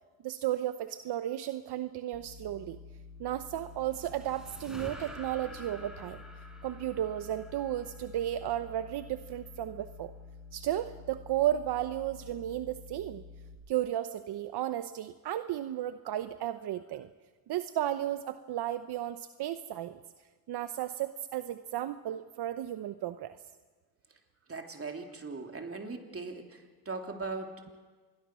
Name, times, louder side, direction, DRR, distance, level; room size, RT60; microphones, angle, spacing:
voice 1, 0.2-2.8 3.2-6.2 6.6-10.1 10.5-13.2 13.7-17.1 17.5-20.0 20.5-23.4, right 12 dB, 75° right, 10 dB, 0.9 m, -34 dB
sound 1, 2.1-13.6, left 4 dB, 85° left, 5.0 m, -50 dB
sound 2, 3.5-8.9, equal, ahead, 4.8 m, -49 dB
voice 2, 24.5-27.8, right 3 dB, 35° right, 3 dB, 3.4 m, -40 dB
26.5 x 22.0 x 6.3 m, 1.4 s
cardioid pair, 75°, 40 cm